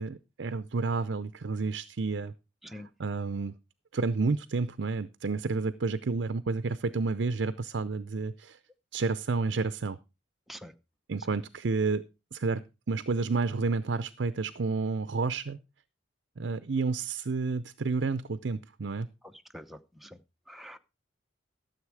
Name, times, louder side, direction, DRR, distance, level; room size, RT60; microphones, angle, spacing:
voice 1, 0.0-2.3 2.7-3.5 3.9-8.6 8.9-10.0 11.1-12.0 12.3-12.6 12.9-15.6 16.4-19.1, right 4 dB, 65° right, 13 dB, 0.6 m, -30 dB
voice 2, 19.5-20.1 20.5-20.8, equal, ahead, 6 dB, 0.8 m, -45 dB
13.0 x 7.2 x 4.8 m, 0.28 s
head